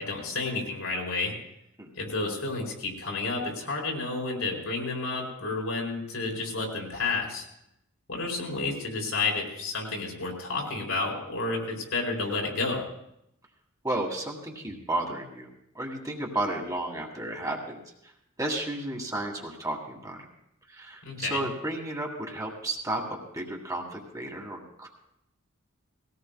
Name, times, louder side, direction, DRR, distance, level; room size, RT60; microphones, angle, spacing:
voice 1, 0.0-1.3 2.0-7.4 8.1-12.9 21.0-21.4, left 3 dB, 75° left, -1 dB, 4.5 m, -31 dB
voice 2, 13.8-15.5 15.7-18.1 18.4-20.2 20.7-24.9, right 1 dB, 15° right, 0 dB, 1.7 m, -33 dB
20.5 x 17.0 x 2.3 m, 0.79 s
head